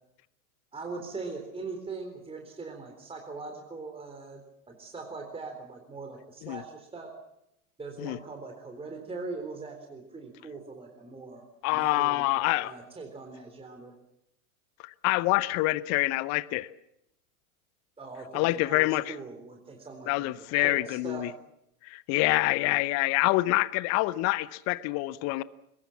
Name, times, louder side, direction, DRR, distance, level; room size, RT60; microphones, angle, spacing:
voice 1, 0.7-7.1 7.8-11.4 11.7-12.2 12.6-13.9 18.0-21.3, right 3 dB, 15° right, 3.8 m, -41 dB
voice 2, 11.6-12.7 14.8-16.7 18.3-19.1 20.1-21.3 21.8-25.4, left 20 dB, 35° left, 0.8 m, -26 dB
23.0 x 21.5 x 7.3 m
hypercardioid pair, 95°, 43 cm